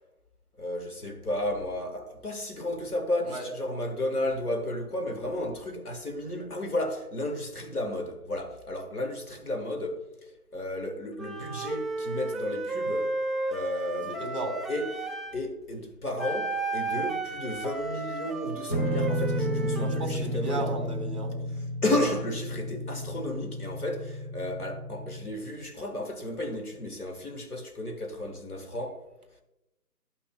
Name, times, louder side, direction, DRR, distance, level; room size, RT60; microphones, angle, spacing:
voice 1, 0.6-10.1 10.5-13.2 13.5-14.2 14.7-20.7 21.8-29.1, left 1 dB, 65° left, 1.7 m, -33 dB
Wind instrument woodwind instrument, 11.2-15.4 16.2-20.1, right 3 dB, ahead, 0.4 m, -33 dB
voice 2, 14.1-14.6 19.7-21.3, right 2 dB, 25° right, 2.4 m, -34 dB
sound 1, 18.7-25.2, equal, 35° left, 1.2 m, -32 dB
13.5 x 6.0 x 2.3 m
figure-of-eight pair, 170°, 48 cm